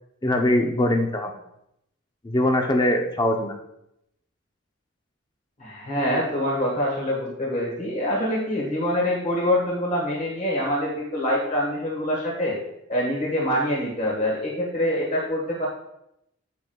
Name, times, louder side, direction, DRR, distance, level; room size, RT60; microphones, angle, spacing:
voice 1, 0.2-1.3 2.2-3.6, left 1 dB, 20° left, 3 dB, 0.7 m, -22 dB
voice 2, 5.6-12.6 12.9-15.7, left 1 dB, 40° left, -2 dB, 1.5 m, -25 dB
8.4 x 8.1 x 2.3 m, 0.81 s
head